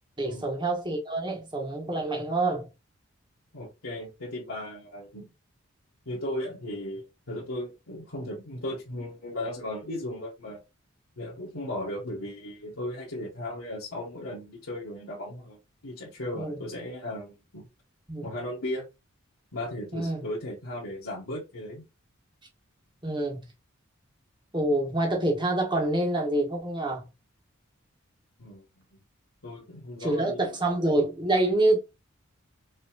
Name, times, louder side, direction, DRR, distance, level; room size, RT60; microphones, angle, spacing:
voice 1, 0.2-2.7 16.3-16.6 18.1-18.3 19.9-20.2 23.0-23.5 24.5-27.1 30.0-31.8, right 2 dB, 20° right, 1.3 m, -26 dB
voice 2, 3.5-5.3 6.0-10.6 11.2-17.7 18.2-18.9 19.5-21.8 28.4-28.8 29.4-30.4, left 1 dB, 85° left, 1.6 m, -36 dB
5.3 x 2.9 x 2.4 m
head